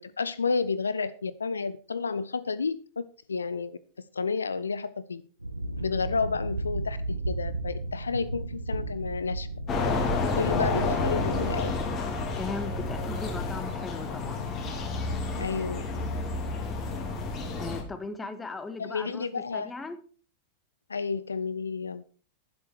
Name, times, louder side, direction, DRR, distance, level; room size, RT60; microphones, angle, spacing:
voice 1, 0.0-3.8 4.1-5.2 5.8-9.5 10.4-11.7 15.4-15.8 18.8-19.7 20.9-22.0, left 5 dB, 75° left, 0.5 m, -31 dB
sound 1, 5.4-13.7, right 2 dB, 85° right, 1.4 m, -35 dB
sound 2, 9.7-17.8, left 3 dB, 35° left, 3.7 m, -30 dB
voice 2, 10.5-10.9 12.4-14.4 17.6-19.3 19.5-20.0, left 3 dB, 15° left, 1.6 m, -38 dB
11.5 x 10.5 x 4.6 m
figure-of-eight pair, 90°, 0 cm